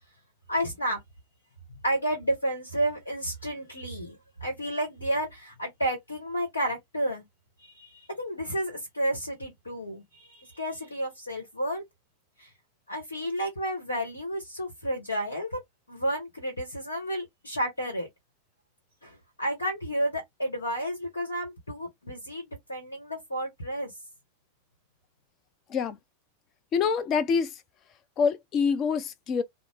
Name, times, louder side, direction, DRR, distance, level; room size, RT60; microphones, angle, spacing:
voice 1, 0.5-1.0 1.8-7.2 7.6-11.8 12.4-12.5 12.9-15.6 15.9-18.1 19.0-23.9, right 1 dB, 75° left, 1.1 m, -31 dB
voice 2, 26.7-27.5 28.2-29.4, left 6 dB, 30° left, 0.5 m, -25 dB
2.5 x 2.0 x 3.3 m
figure-of-eight pair, 90°, 0 cm